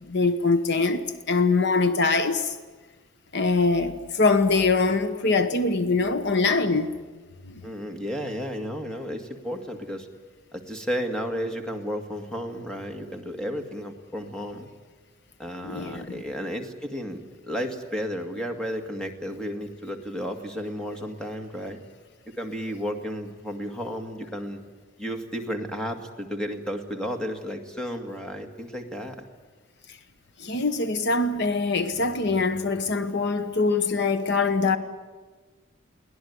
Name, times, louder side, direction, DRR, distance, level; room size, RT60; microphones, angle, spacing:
voice 1, 0.0-2.6 3.3-6.9 7.4-7.6 15.6-16.1 30.4-34.8, left 3 dB, 55° left, 1.1 m, -23 dB
voice 2, 7.6-10.1 10.5-14.7 15.4-21.8 22.4-24.6 25.0-29.2, equal, 5° left, 2.1 m, -33 dB
23.0 x 18.0 x 9.6 m
head